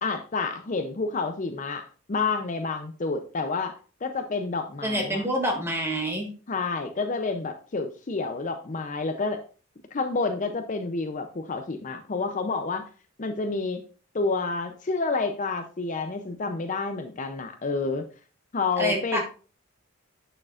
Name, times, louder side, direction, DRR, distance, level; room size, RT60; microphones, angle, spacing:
voice 1, 0.0-3.7 4.0-5.2 6.5-9.4 9.9-12.8 13.2-13.8 14.1-18.1 18.5-19.2, left 4 dB, 35° left, 7 dB, 0.5 m, -29 dB
voice 2, 4.8-6.3 18.8-19.2, equal, 10° right, 1 dB, 1.5 m, -27 dB
8.7 x 6.5 x 2.4 m, 0.38 s
head